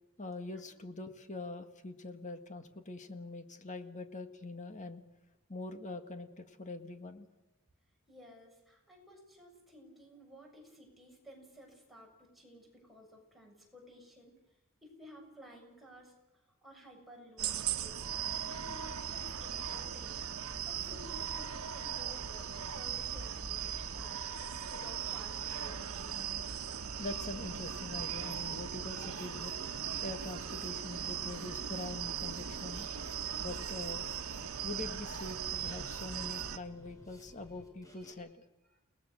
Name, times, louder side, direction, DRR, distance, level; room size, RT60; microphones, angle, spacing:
voice 1, 0.2-5.0 5.5-7.3 26.7-29.5 30.0-32.9 33.4-34.1 34.6-38.3, left 2 dB, 35° left, 7 dB, 1.9 m, -44 dB
voice 2, 8.1-14.4 14.8-18.1 18.4-20.4 20.7-26.0 31.0-31.1 38.0-38.1 38.7-38.8, equal, ahead, -2 dB, 7.1 m, -55 dB
sound 1, 17.4-36.6, right 8 dB, 80° right, 1.2 m, -39 dB
Drum kit, 27.3-38.1, equal, 15° left, 5.6 m, -58 dB
30.0 x 19.0 x 6.6 m, 0.95 s
head